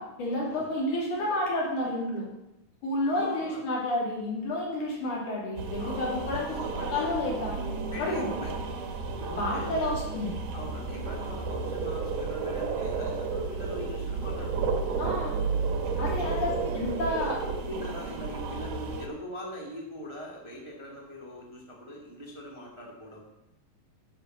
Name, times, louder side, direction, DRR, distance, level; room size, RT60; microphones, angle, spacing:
voice 1, 0.0-2.3 2.8-7.6 8.0-8.3 9.4-10.3 15.0-15.4 16.0-17.4, left 1 dB, 75° left, -4 dB, 4.3 m, -30 dB
voice 2, 3.1-3.6 5.8-7.1 7.9-8.6 9.2-10.0 10.5-15.0 16.2-16.6 17.1-17.2 17.6-23.3, left 1 dB, 10° right, -3 dB, 1.5 m, -41 dB
sound 1, 5.6-19.1, right 4 dB, 90° right, 2.6 m, -32 dB
10.0 x 6.8 x 6.4 m, 0.90 s
omnidirectional pair, 3.5 m